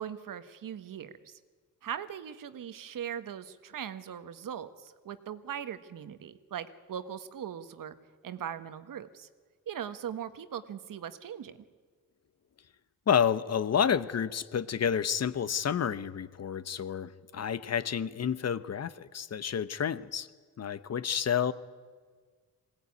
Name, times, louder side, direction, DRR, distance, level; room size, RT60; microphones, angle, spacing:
voice 1, 0.0-1.4 1.8-8.0 8.2-9.3 9.7-11.6, right 9 dB, 65° right, 12 dB, 1.4 m, -40 dB
voice 2, 13.1-20.3 20.6-21.5, left 8 dB, 45° left, 15 dB, 0.9 m, -29 dB
21.5 x 17.0 x 9.6 m, 1.6 s
cardioid pair, 90°, 36 cm